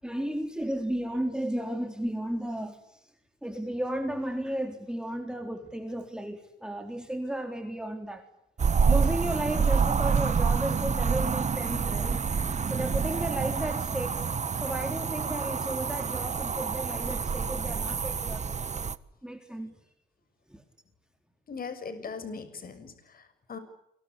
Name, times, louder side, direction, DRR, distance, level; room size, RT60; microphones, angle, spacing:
voice 1, 0.0-3.1 3.4-8.3 8.9-12.3 12.7-14.2 14.6-18.6 19.2-19.8 20.5-20.6, right 1 dB, 5° right, 5 dB, 4.0 m, -34 dB
sound 1, 8.6-19.0, right 5 dB, 35° right, 1.6 m, -27 dB
voice 2, 21.5-23.6, left 5 dB, 45° left, 11 dB, 6.9 m, -40 dB
29.0 x 24.5 x 8.3 m, 0.78 s
cardioid pair, 90°, 20 cm